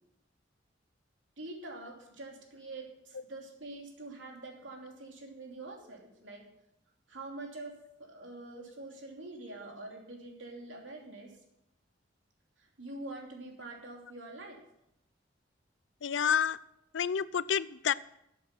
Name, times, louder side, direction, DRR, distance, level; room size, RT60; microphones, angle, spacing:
voice 1, 1.4-6.4 7.1-7.7 8.0-11.3 12.6-14.6, right 2 dB, 85° right, 0 dB, 3.0 m, -45 dB
voice 2, 16.0-16.6 16.9-17.9, left 8 dB, 75° left, 19 dB, 0.5 m, -29 dB
13.5 x 8.4 x 6.0 m, 0.81 s
head